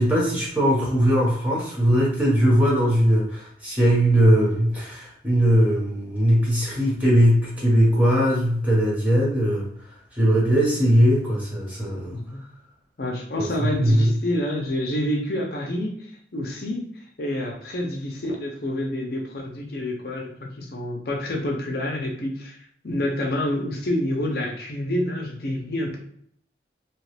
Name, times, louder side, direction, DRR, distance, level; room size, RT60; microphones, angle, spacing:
voice 1, 0.0-9.7 10.1-12.2 13.4-14.1, equal, 10° right, -5 dB, 1.0 m, -20 dB
voice 2, 12.1-12.4 13.0-22.6 22.8-26.0, left 1 dB, 55° left, 1 dB, 0.6 m, -28 dB
2.9 x 2.4 x 3.2 m, 0.65 s
head